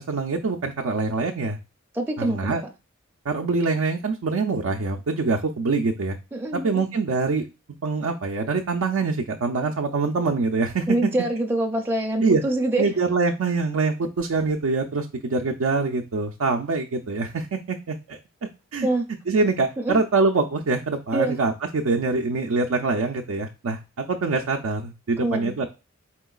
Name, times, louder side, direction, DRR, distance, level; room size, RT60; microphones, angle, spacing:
voice 1, 0.0-1.6 2.2-2.6 3.3-6.2 6.5-7.5 7.8-11.1 12.2-12.4 12.8-18.2 18.7-18.9 19.3-25.6, right 4 dB, 80° right, 3 dB, 0.5 m, -24 dB
voice 2, 1.9-2.5 6.3-6.8 10.9-12.9 18.8-19.0 19.8-20.0 21.1-21.4 25.2-25.5, right 1 dB, 10° right, 2 dB, 0.4 m, -25 dB
4.4 x 3.7 x 2.3 m, 0.29 s
head